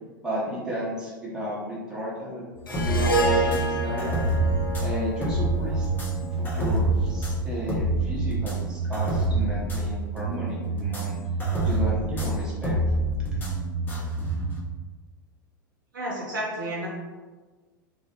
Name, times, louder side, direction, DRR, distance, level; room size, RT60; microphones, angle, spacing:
voice 1, 0.2-4.2 4.8-5.9 6.3-11.2 11.6-12.8, equal, 5° right, -7 dB, 0.9 m, -33 dB
sound 1, 2.6-14.6, right 2 dB, 15° left, 0.6 m, -27 dB
Harp, 2.7-7.1, right 1 dB, 80° left, 0.4 m, -29 dB
voice 2, 15.9-16.9, right 1 dB, 65° right, -5 dB, 0.5 m, -31 dB
2.3 x 2.0 x 2.8 m, 1.3 s
figure-of-eight pair, 90°, 11 cm